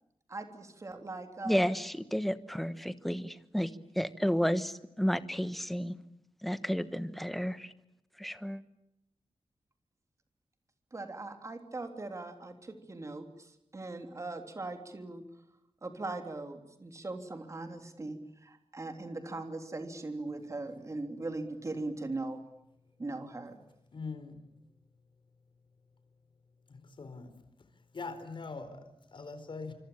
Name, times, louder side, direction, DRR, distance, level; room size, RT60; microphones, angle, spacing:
voice 1, 0.3-1.7 10.9-15.2 15.8-22.4 23.0-23.6, right 2 dB, 30° right, 6 dB, 3.3 m, -40 dB
voice 2, 1.4-5.9 6.4-7.7 8.2-8.6, equal, ahead, 12 dB, 1.2 m, -32 dB
voice 3, 23.9-24.5 26.7-27.4 27.9-29.7, left 4 dB, 50° left, 10 dB, 4.4 m, -42 dB
26.0 x 26.0 x 8.8 m, 0.82 s
wide cardioid pair, 175°, 11 cm